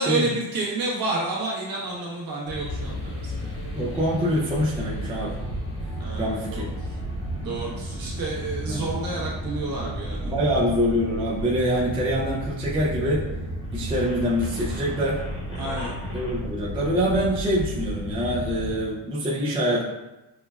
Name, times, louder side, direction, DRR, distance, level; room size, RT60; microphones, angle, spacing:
voice 1, 0.0-3.6 6.0-7.0 7.4-10.5 15.6-15.9, right 2 dB, 50° right, -5 dB, 1.1 m, -30 dB
sound 1, 2.5-18.8, equal, 30° left, 1.0 m, -32 dB
voice 2, 3.8-5.4 6.2-6.7 8.7-8.9 10.3-13.3 13.7-15.2 16.1-19.8, equal, 15° right, -5 dB, 0.3 m, -25 dB
5.8 x 2.3 x 2.2 m, 1.0 s
cardioid pair, 165°, 45 cm